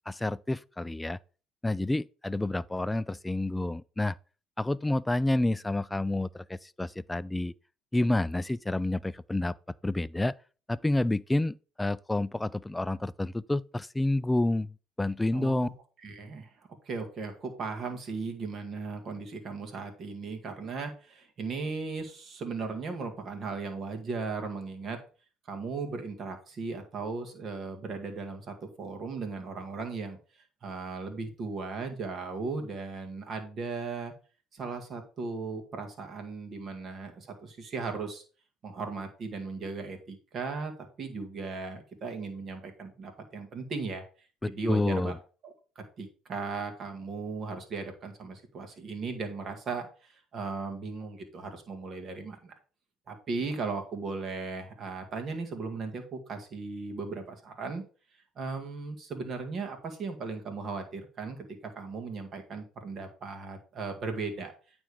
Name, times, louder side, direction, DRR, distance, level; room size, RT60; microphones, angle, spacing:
voice 1, 0.1-1.2 1.6-4.1 4.6-7.5 7.9-9.5 9.8-10.3 10.7-15.7 44.4-45.2, left 2 dB, 10° left, 0.3 m, -29 dB
voice 2, 15.3-15.7 16.0-16.5 16.9-25.0 25.5-30.2 30.6-34.1 34.5-38.2 38.6-44.0 44.5-45.1 45.4-52.5 53.1-57.8 58.4-64.5, right 4 dB, 50° right, 2.0 m, -37 dB
9.1 x 3.5 x 4.8 m
supercardioid pair, 75°, 0 cm